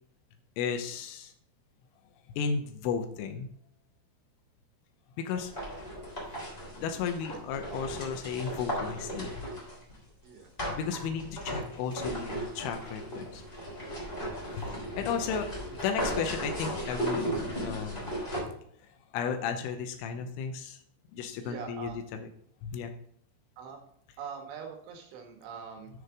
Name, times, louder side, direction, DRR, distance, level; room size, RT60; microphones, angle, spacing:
voice 1, 0.6-1.3 2.4-3.5 5.2-5.5 6.8-9.3 10.7-13.4 14.6-18.1 19.1-20.8 21.1-22.3 22.6-22.9, left 6 dB, 90° left, 6 dB, 3.3 m, -34 dB
sound 1, 5.3-10.0 10.6-18.4, equal, 15° left, 2.6 m, -36 dB
voice 2, 21.4-22.0 23.6-23.8 24.2-25.9, right 6 dB, 80° right, 4 dB, 3.9 m, -42 dB
9.0 x 6.6 x 3.7 m, 0.66 s
omnidirectional pair, 5.6 m